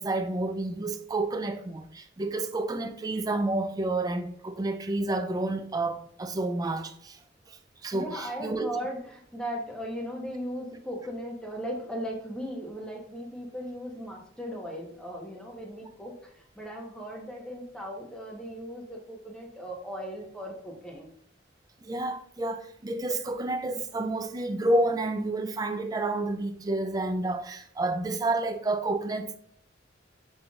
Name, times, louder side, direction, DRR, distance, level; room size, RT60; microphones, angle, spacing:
voice 1, 0.0-7.2 7.5-8.7 21.8-29.4, right 2 dB, 20° right, 0.3 m, -30 dB
voice 2, 7.9-21.1, equal, 5° left, 0.9 m, -37 dB
5.4 x 3.3 x 2.3 m
head